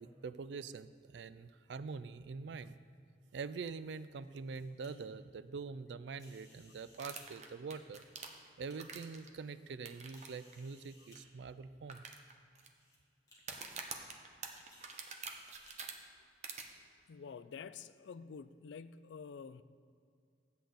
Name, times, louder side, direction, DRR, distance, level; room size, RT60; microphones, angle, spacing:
voice 1, 0.0-2.8 3.3-8.0 8.6-12.0, right 4 dB, 75° right, 14 dB, 0.4 m, -45 dB
sound 1, 4.2-4.9 6.1-7.3 8.0-8.8 9.4-9.5 10.1-11.2 12.1-12.2 12.6-13.0 13.3-13.4 14.7-15.7, left 1 dB, 20° left, 2.1 m, -64 dB
sound 2, 6.9-9.3 9.9-10.3 10.5-10.6 11.2-11.3 11.9-12.7 13.4-15.9 16.4-16.6, right 5 dB, 40° right, 0.8 m, -46 dB
voice 2, 17.1-19.6, left 6 dB, 80° left, 14 dB, 0.4 m, -49 dB
12.5 x 8.4 x 3.9 m, 2.3 s
head